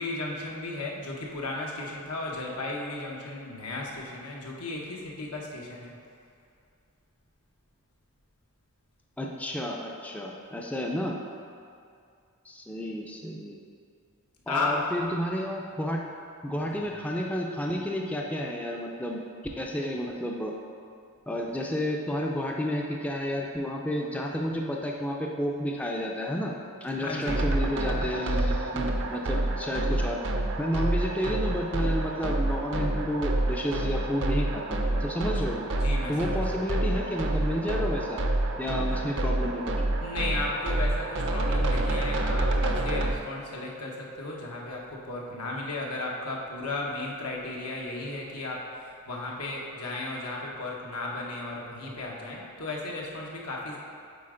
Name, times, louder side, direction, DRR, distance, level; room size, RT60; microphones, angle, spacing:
voice 1, 0.0-5.9 14.5-14.7 16.7-16.9 27.0-27.4 35.7-36.4 38.9-39.0 40.0-53.8, left 2 dB, 90° left, -2 dB, 1.1 m, -35 dB
voice 2, 9.2-11.2 12.5-13.6 14.5-16.0 16.4-19.2 19.6-20.5 21.3-30.2 30.6-35.7 36.1-38.2 38.6-39.8, equal, 5° left, -1 dB, 0.4 m, -31 dB
sound 1, 27.3-43.1, right 2 dB, 55° right, 0.5 m, -28 dB
8.5 x 4.1 x 3.8 m, 2.4 s
head